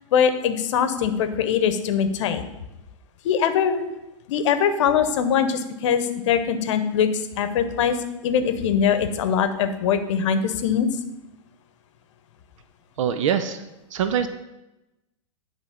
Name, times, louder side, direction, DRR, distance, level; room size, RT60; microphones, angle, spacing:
voice 1, 0.1-2.5 3.2-3.8 4.3-7.1 7.4-8.0 8.2-10.9, left 7 dB, 65° left, 9 dB, 0.8 m, -22 dB
voice 2, 13.0-13.6 13.9-14.3, right 8 dB, 70° right, 9 dB, 0.6 m, -23 dB
9.8 x 3.5 x 5.0 m, 0.97 s
hypercardioid pair, 130°, 17 cm